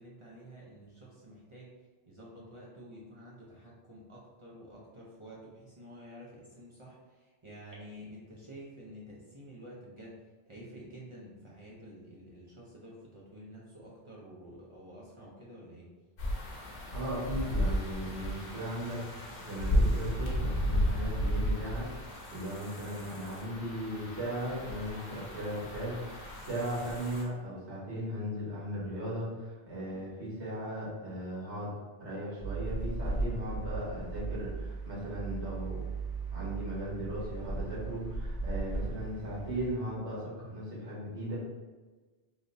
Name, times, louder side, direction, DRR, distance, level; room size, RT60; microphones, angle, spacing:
voice 1, 0.0-1.7 2.1-10.2 10.5-15.9 29.9-30.1, equal, 35° right, -5 dB, 0.6 m, -50 dB
sound 1, 16.2-27.2, equal, 90° left, 1.1 m, -33 dB
voice 2, 16.9-21.9 22.3-31.7 32.0-35.8 36.3-41.4, equal, 75° right, -7 dB, 1.5 m, -37 dB
sound 2, 32.4-39.7, right 3 dB, 15° right, 1.2 m, -37 dB
3.5 x 2.6 x 2.6 m, 1.3 s
omnidirectional pair, 1.2 m